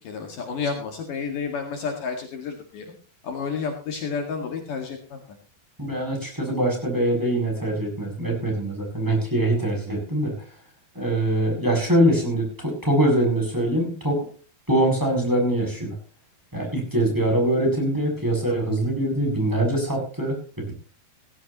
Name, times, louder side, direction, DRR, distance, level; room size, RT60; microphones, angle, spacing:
voice 1, 0.0-2.9 3.2-5.2, left 5 dB, 60° left, 3 dB, 3.4 m, -30 dB
voice 2, 5.8-10.3 10.9-14.3 14.7-15.9 16.5-20.7, right 1 dB, 5° right, -1 dB, 7.2 m, -23 dB
18.5 x 16.5 x 3.0 m, 0.39 s
omnidirectional pair, 4.3 m